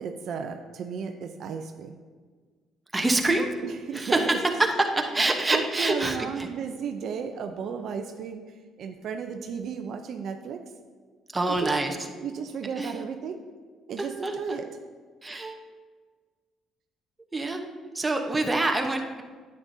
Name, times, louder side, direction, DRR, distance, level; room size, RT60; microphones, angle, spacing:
voice 1, 0.0-2.0 3.6-4.3 5.5-8.4 8.8-10.6 11.5-11.7 12.2-13.4 13.9-14.7, right 6 dB, 65° right, 6 dB, 0.5 m, -34 dB
voice 2, 2.9-3.5 3.9-6.5 11.3-12.0 12.8-12.9 14.0-14.3 15.2-15.6 17.3-17.6 17.9-19.2, right 2 dB, 15° right, 4 dB, 1.0 m, -26 dB
9.7 x 8.6 x 2.7 m, 1.5 s
cardioid pair, 90°, 0 cm